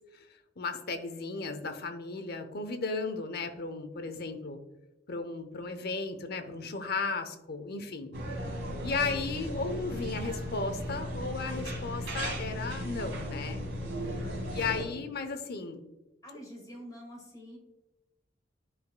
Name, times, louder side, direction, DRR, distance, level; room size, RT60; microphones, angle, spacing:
voice 1, 0.6-4.6 5.1-8.1 8.8-13.6 14.5-15.8, left 4 dB, 55° left, 7 dB, 0.8 m, -35 dB
sound 1, 8.1-14.8, equal, 85° right, 1.8 m, -36 dB
voice 2, 14.6-15.1 16.2-17.6, equal, 20° left, -2 dB, 2.2 m, -48 dB
11.0 x 5.0 x 2.2 m, 1.0 s
head